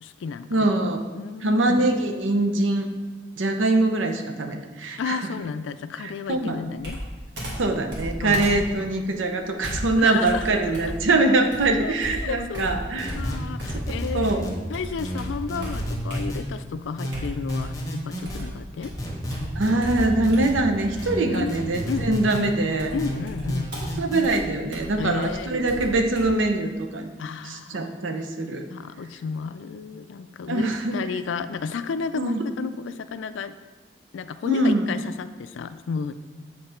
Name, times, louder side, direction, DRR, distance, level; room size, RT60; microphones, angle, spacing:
voice 1, 0.0-0.7 1.1-1.7 5.0-7.0 8.2-9.2 10.0-10.5 11.8-12.7 13.1-18.9 21.3-22.1 22.9-23.8 25.0-25.8 27.2-27.8 28.7-33.6 34.1-36.1, left 5 dB, 80° left, 12 dB, 0.3 m, -32 dB
voice 2, 0.5-1.1 1.4-2.9 3.4-5.2 6.3-6.6 7.6-13.1 13.7-14.5 19.6-22.9 24.0-27.1 27.4-28.6 30.5-31.0 32.1-32.4 34.4-34.9, right 2 dB, 85° right, 5 dB, 0.7 m, -23 dB
Computer keyboard, 6.8-14.4 14.7-16.6 17.1-17.9 18.2-26.2, equal, 60° right, 1.8 m, -36 dB
sound 1, 13.0-14.6 15.0-16.4 17.0-18.4 19.0-20.6 21.0-22.4 23.0-24.4, equal, 20° left, 0.9 m, -31 dB
7.7 x 3.9 x 4.4 m, 1.3 s
head